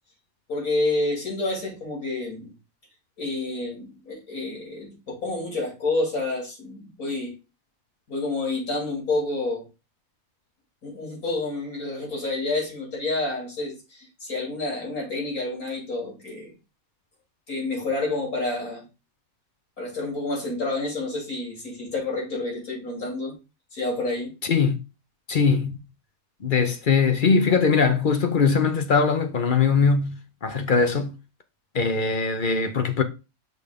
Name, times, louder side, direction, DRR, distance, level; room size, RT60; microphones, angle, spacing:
voice 1, 0.5-2.5 3.2-7.3 8.1-9.6 10.8-16.5 17.5-18.8 19.8-23.3 23.7-24.3, left 2 dB, 85° left, 3.4 m, -29 dB
voice 2, 25.3-25.8 26.4-31.1 31.7-33.0, left 5 dB, 50° left, 0.7 m, -21 dB
6.2 x 3.5 x 5.1 m
omnidirectional pair, 1.5 m